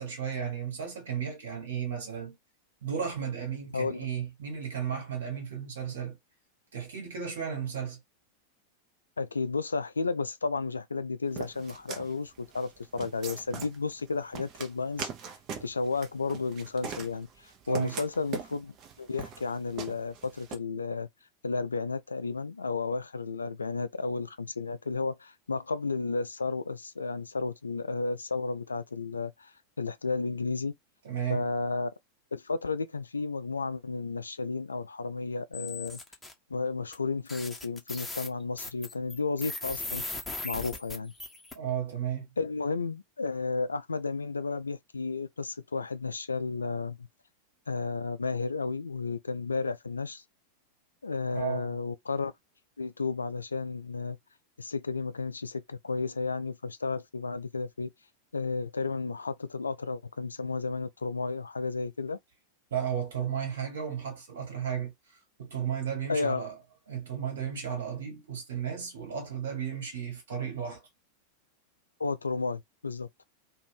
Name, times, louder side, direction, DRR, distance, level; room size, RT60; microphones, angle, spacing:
voice 1, 0.0-2.4 2.8-6.2 6.7-8.0 17.6-18.0 31.0-31.5 41.5-42.3 51.3-51.8 62.7-64.9 65.4-66.5 66.9-70.8, right 8 dB, 60° right, 1.2 m, -34 dB
voice 2, 3.7-4.1 9.2-15.1 15.6-21.1 21.4-30.7 31.3-31.9 32.3-36.0 36.5-41.1 42.4-47.1 47.7-50.2 51.0-52.3 52.8-54.2 54.6-57.9 58.3-62.2 66.1-66.5 72.0-73.1, left 4 dB, 75° left, 0.4 m, -33 dB
sound 1, 11.4-20.6, right 6 dB, 35° right, 0.7 m, -41 dB
sound 2, 35.5-36.3 36.9-37.0 37.3-41.5, left 2 dB, 10° left, 0.9 m, -38 dB
2.6 x 2.5 x 3.2 m
figure-of-eight pair, 90°, 0 cm